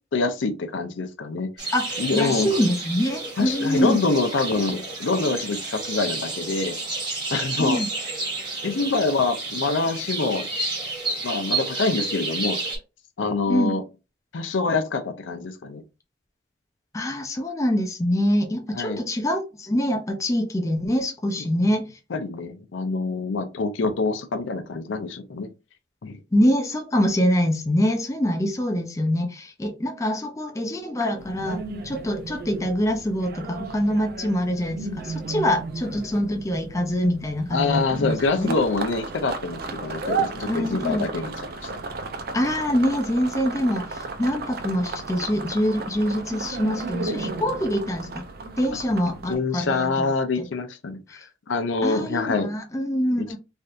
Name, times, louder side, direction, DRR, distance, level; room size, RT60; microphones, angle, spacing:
voice 1, 0.1-1.5 2.0-2.6 3.4-6.8 7.3-7.8 8.6-10.5 11.2-12.6 13.2-13.8 14.3-15.8 18.7-19.0 22.1-25.5 26.0-26.2 37.5-41.3 41.6-41.7 49.3-52.5 53.2-53.4, left 3 dB, 85° left, 0.5 m, -25 dB
sound 1, 1.6-12.8, right 3 dB, 20° right, 1.4 m, -31 dB
voice 2, 1.7-4.0 7.6-7.9 13.5-13.7 16.9-21.9 26.3-38.6 40.5-41.1 42.3-48.3 48.6-50.1 50.4-50.5 51.1-51.2 51.8-53.4, equal, 15° left, 0.4 m, -24 dB
sound 2, 31.2-49.4, right 4 dB, 50° right, 0.4 m, -34 dB
3.3 x 2.7 x 2.4 m
head